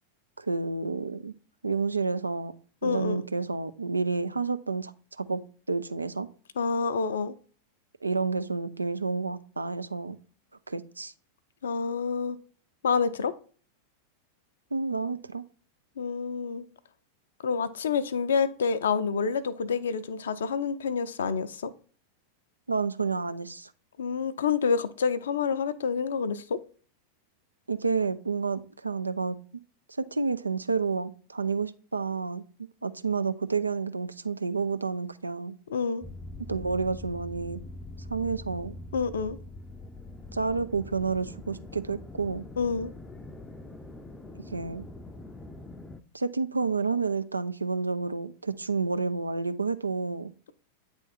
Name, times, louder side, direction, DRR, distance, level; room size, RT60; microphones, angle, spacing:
voice 1, 0.4-1.3 1.6-2.5 2.8-5.4 5.7-6.3 8.0-10.2 10.7-11.1 14.7-15.4 22.7-23.7 27.7-29.4 30.0-32.4 32.8-35.6 36.5-37.6 38.1-38.7 40.3-42.5 44.4-44.8 46.1-50.3, right 4 dB, 80° right, 0.4 m, -30 dB
voice 2, 2.8-3.2 6.6-7.3 11.6-12.4 12.8-13.3 16.0-16.6 17.4-21.7 24.0-26.6 35.7-36.0 38.9-39.4 42.6-42.9, left 5 dB, 65° left, 0.5 m, -28 dB
sound 1, 36.0-46.0, left 2 dB, 10° left, 0.5 m, -43 dB
8.9 x 3.5 x 4.1 m
figure-of-eight pair, 90°, 0 cm